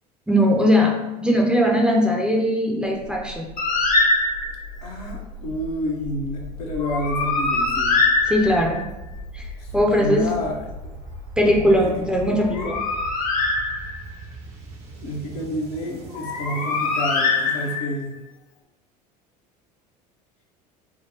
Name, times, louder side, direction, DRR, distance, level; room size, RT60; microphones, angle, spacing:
voice 1, 0.3-0.9 1.2-3.4 8.3-8.8 9.3-9.5 9.7-10.3 11.4-12.7, equal, 5° right, -1 dB, 0.7 m, -19 dB
sound 1, 3.0-17.8, equal, 55° right, 1.0 m, -39 dB
Bird, 3.6-4.7 6.8-8.9 12.3-14.2 16.1-18.1, left 3 dB, 40° left, 0.9 m, -23 dB
voice 2, 4.8-8.0 9.6-11.0 11.8-11.9 12.5-12.9 15.0-18.1, equal, 65° left, -2 dB, 1.1 m, -29 dB
4.6 x 2.2 x 3.8 m, 0.98 s
figure-of-eight pair, 70°, 21 cm